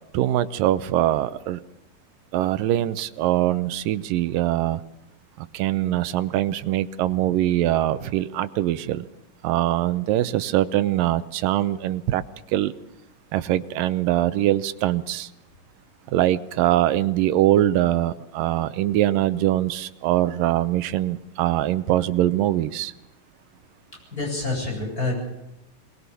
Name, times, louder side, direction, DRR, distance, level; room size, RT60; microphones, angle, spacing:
voice 1, 0.1-1.6 2.3-4.8 5.4-9.1 9.4-12.2 12.5-12.7 13.3-15.3 16.1-22.9, right 13 dB, 90° right, 14 dB, 2.6 m, -22 dB
voice 2, 24.1-25.2, left 2 dB, 25° left, 0 dB, 8.6 m, -27 dB
23.0 x 20.0 x 7.0 m, 0.93 s
omnidirectional pair, 3.8 m